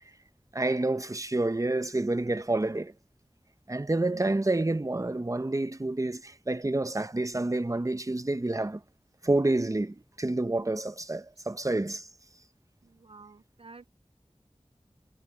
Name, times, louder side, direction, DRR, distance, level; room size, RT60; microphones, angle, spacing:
voice 1, 0.5-2.9 3.7-8.8 9.2-12.1, right 2 dB, 30° right, 0.8 m, -28 dB
voice 2, 4.1-4.4 13.0-13.9, right 3 dB, 55° right, 0.5 m, -48 dB
wide cardioid pair, 45°, 11 cm